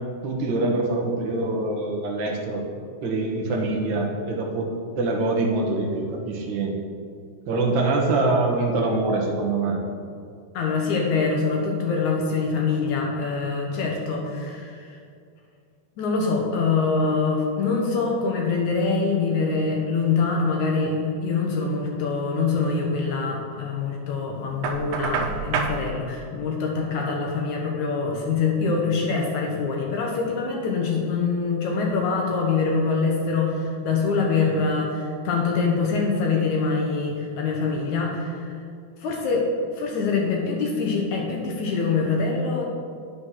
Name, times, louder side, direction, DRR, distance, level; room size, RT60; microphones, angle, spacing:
voice 1, 0.2-2.6 3.0-4.7 5.0-6.7 7.5-9.8, right 2 dB, 60° right, -1 dB, 1.2 m, -24 dB
voice 2, 10.5-15.0 16.0-38.5 39.0-39.5 39.8-42.6, left 4 dB, 65° left, 0 dB, 2.1 m, -24 dB
Knock, 24.6-25.8, right 5 dB, 75° right, 2.6 m, -26 dB
9.7 x 6.5 x 5.8 m, 2.3 s
omnidirectional pair, 4.2 m